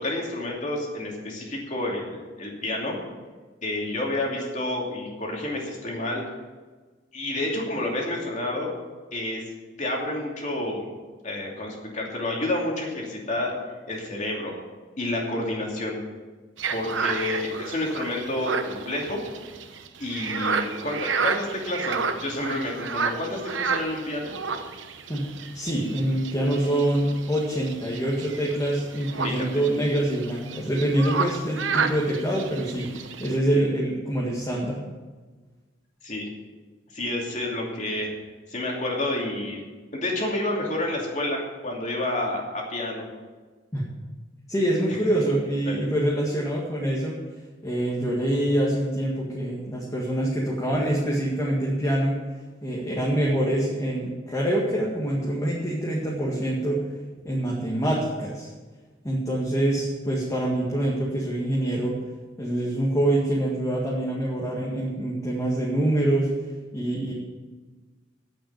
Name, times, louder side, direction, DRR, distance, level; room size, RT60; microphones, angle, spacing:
voice 1, 0.0-3.0 3.6-6.2 7.1-8.7 9.1-9.4 9.8-10.8 11.2-13.6 13.9-14.5 15.0-16.0 16.7-19.2 20.0-24.3 29.2-29.4 33.5-33.6 36.0-36.3 36.9-38.1 38.5-39.6 39.9-43.1 45.6-45.8, left 1 dB, 40° left, -1 dB, 2.8 m, -29 dB
sound 1, 16.6-33.4, right 5 dB, 80° right, 0.9 m, -31 dB
voice 2, 25.5-34.8 43.7-43.8 44.5-47.2 47.6-52.2 52.6-56.8 57.2-58.5 59.0-62.0 62.4-66.3 66.7-67.1, right 1 dB, 20° left, -4 dB, 1.9 m, -25 dB
9.2 x 8.7 x 8.8 m, 1.3 s
head